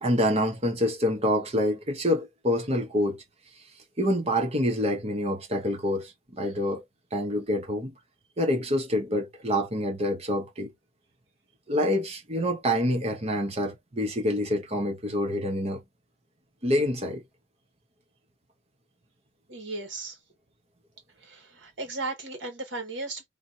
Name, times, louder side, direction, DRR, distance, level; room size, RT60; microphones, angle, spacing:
voice 1, 0.0-3.2 4.0-6.8 7.1-7.9 8.4-10.7 11.7-15.8 16.6-17.2, equal, 30° right, 1.0 m, -26 dB
voice 2, 19.5-20.2 21.2-23.3, right 2 dB, 65° right, 1.9 m, -36 dB
3.4 x 2.8 x 2.7 m
head